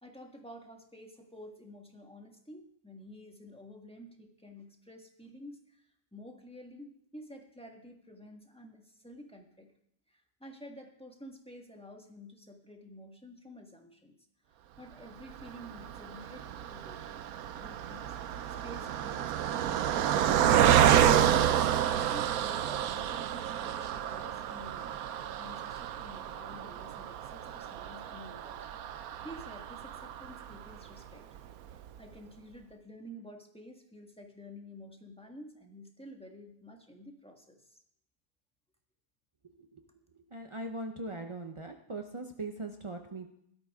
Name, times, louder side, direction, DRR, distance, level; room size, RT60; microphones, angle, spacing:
voice 1, 0.0-9.7 10.1-14.2 14.5-17.2 17.6-21.5 22.1-31.3 32.0-37.8, equal, 5° left, 2 dB, 1.4 m, -51 dB
Car passing by, 15.4-30.8 31.4-31.5 31.7-31.9, right 10 dB, 65° right, 1.0 m, -29 dB
voice 2, 40.3-43.3, right 2 dB, 50° right, 4 dB, 0.3 m, -40 dB
17.0 x 13.0 x 3.6 m, 0.71 s
omnidirectional pair, 1.8 m